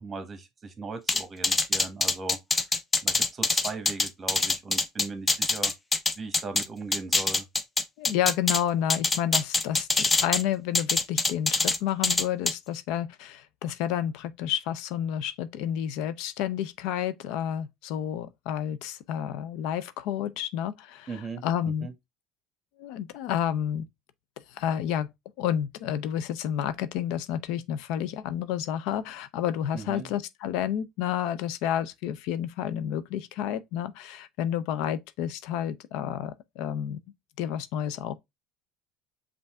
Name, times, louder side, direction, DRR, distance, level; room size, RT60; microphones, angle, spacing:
voice 1, 0.0-2.6 3.0-5.7 6.2-7.5 21.1-21.9 29.7-30.1, right 3 dB, 25° right, 1.1 m, -38 dB
sound 1, 1.1-6.6 6.9-8.6 8.9-10.4 10.7-11.8 12.0-12.5, left 3 dB, 20° left, 0.5 m, -24 dB
voice 2, 8.0-9.9 10.2-21.1 21.4-21.9 22.8-23.9 24.5-25.1 25.4-37.0 37.4-38.2, left 10 dB, 70° left, 0.4 m, -30 dB
5.4 x 2.5 x 3.4 m
supercardioid pair, 115°, 0 cm